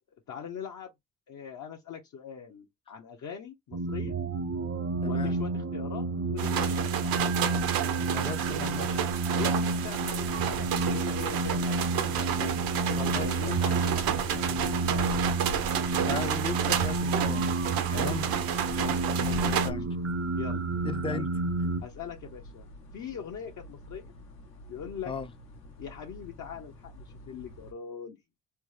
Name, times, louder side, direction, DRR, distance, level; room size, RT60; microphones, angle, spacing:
voice 1, 0.3-0.9 1.3-4.1 5.0-7.3 8.9-12.6 12.8-15.2 17.9-18.4 18.7-19.1 19.4-19.9 20.3-20.6 21.1-21.3 21.8-24.1 24.7-25.1 25.8-28.4, left 7 dB, 55° left, 0.7 m, -42 dB
sound 1, 3.7-21.8, right 3 dB, 40° right, 0.6 m, -30 dB
voice 2, 5.0-5.3 8.1-9.0 13.0-13.8 16.1-17.5 17.9-18.3 19.2-19.9 20.8-21.3 25.1-25.3, left 4 dB, 15° left, 0.4 m, -37 dB
sound 2, 6.4-19.7, right 9 dB, 80° right, 0.7 m, -31 dB
sound 3, 10.3-27.7, left 2 dB, 85° left, 1.1 m, -46 dB
3.4 x 2.0 x 3.1 m
cardioid pair, 70°, 35 cm